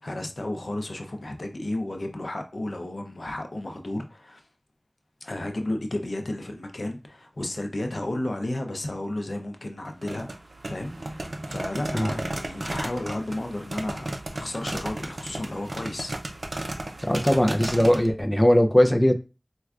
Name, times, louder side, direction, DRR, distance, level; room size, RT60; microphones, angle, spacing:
voice 1, 0.0-4.4 5.2-10.3 10.6-16.1, left 1 dB, 90° left, 0.5 m, -33 dB
sound 1, 9.9-18.1, right 1 dB, 85° right, 0.4 m, -34 dB
voice 2, 17.0-19.1, equal, 25° left, 0.5 m, -19 dB
4.4 x 2.2 x 2.4 m
wide cardioid pair, 40°, 0 cm